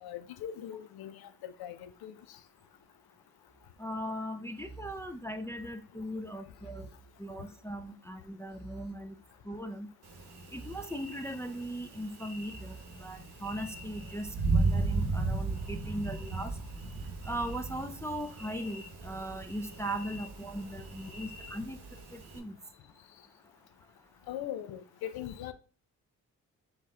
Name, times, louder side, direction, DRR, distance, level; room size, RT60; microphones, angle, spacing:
voice 1, 0.0-2.4 24.3-25.5, left 11 dB, 75° left, 0.6 m, -41 dB
sound 1, 3.5-3.9 4.6-5.9 6.5-7.8 8.5-9.8 10.5-11.8 12.4-13.7 14.4-15.7 16.4-16.7, right 3 dB, 25° left, 1.1 m, -52 dB
voice 2, 3.8-6.9 7.2-9.1 9.5-9.9 10.5-16.5 17.3-21.8 22.1-22.5, equal, 5° left, 0.4 m, -39 dB
Thunder, 10.0-22.4, right 3 dB, 80° right, 1.1 m, -36 dB
4.5 x 2.8 x 3.6 m
supercardioid pair, 45°, 37 cm